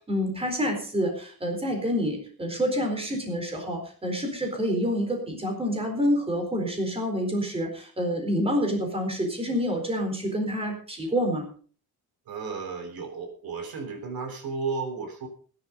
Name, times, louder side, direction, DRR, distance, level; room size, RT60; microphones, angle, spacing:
voice 1, 0.1-11.5, equal, 15° right, 3 dB, 4.2 m, -27 dB
voice 2, 12.3-15.3, right 4 dB, 70° right, 6 dB, 3.7 m, -33 dB
17.5 x 10.5 x 5.2 m, 0.43 s
cardioid pair, 175°, 38 cm